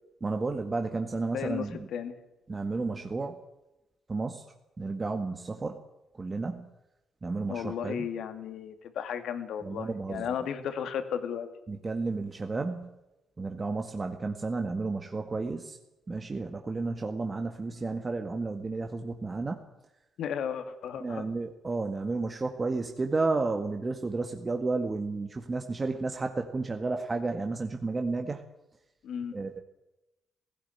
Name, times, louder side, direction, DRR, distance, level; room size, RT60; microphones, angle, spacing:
voice 1, 0.2-1.9 2.5-3.4 4.1-4.4 4.8-5.8 6.2-6.7 7.2-8.1 9.6-10.2 11.7-12.9 13.4-15.8 16.1-19.6 21.0-28.4 29.3-29.6, right 3 dB, 25° right, 4 dB, 1.8 m, -32 dB
voice 2, 1.3-1.7 1.9-2.1 7.5-11.5 20.2-21.2 29.0-29.3, left 8 dB, 75° left, 9 dB, 2.4 m, -34 dB
16.5 x 16.5 x 9.7 m, 0.95 s
cardioid pair, 90°, 0 cm